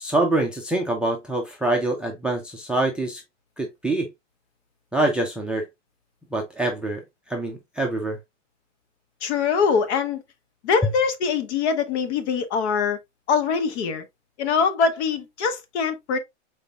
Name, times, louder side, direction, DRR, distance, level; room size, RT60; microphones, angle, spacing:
voice 1, 0.0-3.2 3.6-4.1 4.9-5.7 6.3-7.0 7.3-8.2, right 2 dB, 5° right, 0.4 m, -25 dB
voice 2, 9.2-10.2 10.6-13.0 13.3-14.0 14.4-16.2, left 5 dB, 60° left, 1.3 m, -23 dB
5.3 x 4.1 x 2.4 m
hypercardioid pair, 135°, 37 cm